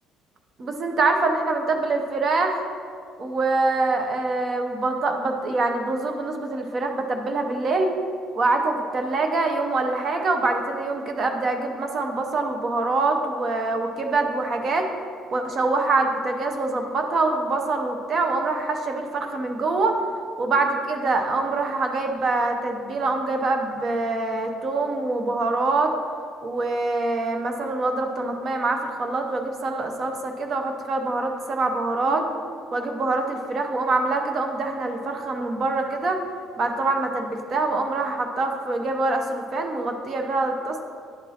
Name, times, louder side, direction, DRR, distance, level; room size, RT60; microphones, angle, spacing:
voice 1, 0.6-2.6 3.2-8.0 8.3-14.9 15.3-19.9 20.4-25.9 26.4-32.3 32.7-36.2 36.6-40.8, right 3 dB, 30° right, 4 dB, 0.6 m, -25 dB
10.5 x 5.9 x 2.9 m, 2.4 s
cardioid pair, 175°, 0 cm